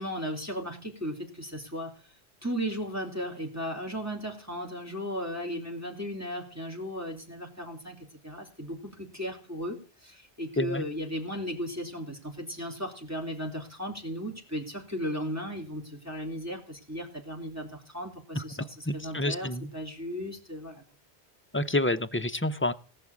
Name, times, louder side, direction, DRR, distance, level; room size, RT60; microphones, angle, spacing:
voice 1, 0.0-1.9 2.4-19.5 19.7-20.8, equal, 15° right, 0 dB, 3.1 m, -36 dB
voice 2, 18.9-19.7 21.5-22.7, left 1 dB, 15° left, 9 dB, 0.4 m, -28 dB
18.0 x 6.0 x 8.5 m, 0.41 s
omnidirectional pair, 1.1 m